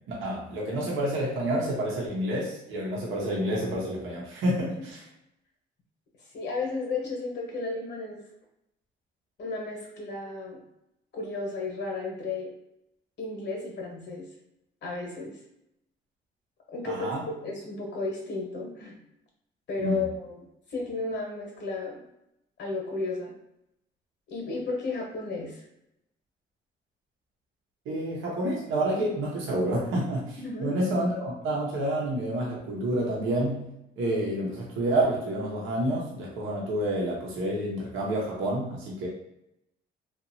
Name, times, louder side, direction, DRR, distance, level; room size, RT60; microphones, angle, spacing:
voice 1, 0.1-5.0 16.8-17.2 19.8-20.1 27.9-39.1, right 1 dB, 85° right, -3 dB, 0.8 m, -29 dB
voice 2, 6.3-8.2 9.4-10.6 11.1-12.5 13.2-14.3 14.8-15.4 16.7-19.0 19.7-20.4 20.7-22.0 22.6-23.3 24.3-25.6 30.4-30.7, left 3 dB, 60° left, -1 dB, 1.0 m, -33 dB
2.8 x 2.5 x 2.6 m, 0.83 s
cardioid pair, 90°, 20 cm